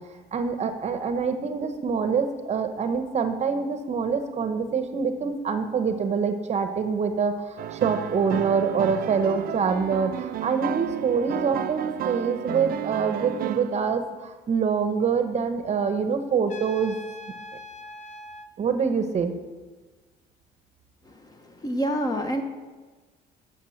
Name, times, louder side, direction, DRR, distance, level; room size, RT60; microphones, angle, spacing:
voice 1, 0.3-17.0 18.6-19.3, right 5 dB, 40° right, 8 dB, 0.8 m, -25 dB
sound 1, 7.6-13.8, right 10 dB, 60° right, 0.5 m, -32 dB
Trumpet, 16.5-18.5, left 1 dB, 40° left, 0.7 m, -42 dB
voice 2, 21.1-22.4, equal, 20° left, 5 dB, 1.1 m, -28 dB
8.6 x 6.9 x 6.4 m, 1.3 s
cardioid pair, 110°, 17 cm